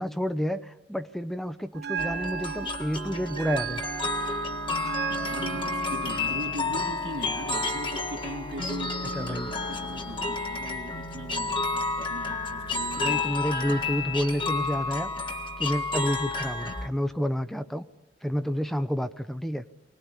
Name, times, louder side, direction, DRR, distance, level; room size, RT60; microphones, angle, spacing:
voice 1, 0.0-3.8 9.1-9.5 13.0-15.1 15.6-17.9 18.2-19.6, equal, ahead, 0.8 m, -29 dB
Bell, 1.7-9.7, right 8 dB, 60° right, 1.1 m, -37 dB
sound 1, 2.0-16.9, left 3 dB, 30° left, 1.7 m, -31 dB
voice 2, 5.1-14.0, equal, 85° right, 2.4 m, -40 dB
25.0 x 19.5 x 10.0 m
head